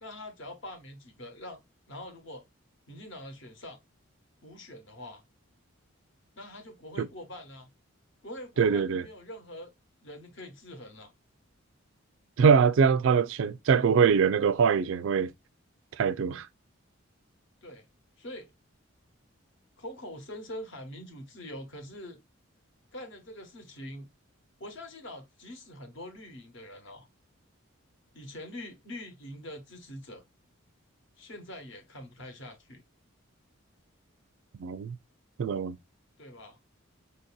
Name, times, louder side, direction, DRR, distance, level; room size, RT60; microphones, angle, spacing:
voice 1, 0.0-1.6 1.9-2.4 2.9-3.8 4.4-5.2 6.3-7.7 8.2-9.7 10.0-11.1 17.6-17.9 18.2-18.5 19.8-22.2 22.9-24.1 24.6-27.1 28.1-30.2 31.2-32.8 36.2-36.6, left 1 dB, 60° left, 1.0 m, -44 dB
voice 2, 8.6-9.0 12.4-15.3 16.0-16.5 34.6-35.0 35.4-35.8, right 6 dB, 65° right, 0.3 m, -23 dB
4.1 x 2.7 x 2.2 m
head